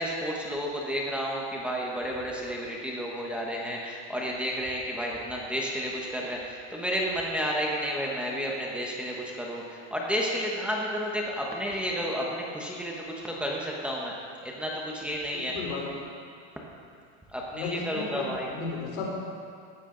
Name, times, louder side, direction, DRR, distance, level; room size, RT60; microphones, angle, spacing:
voice 1, 0.0-14.1 14.4-15.5 17.3-18.5, equal, 5° right, -3 dB, 1.0 m, -31 dB
voice 2, 15.3-16.0 17.5-19.1, left 4 dB, 75° left, -2 dB, 3.9 m, -34 dB
18.0 x 11.5 x 3.8 m, 2.3 s
supercardioid pair, 170°, 37 cm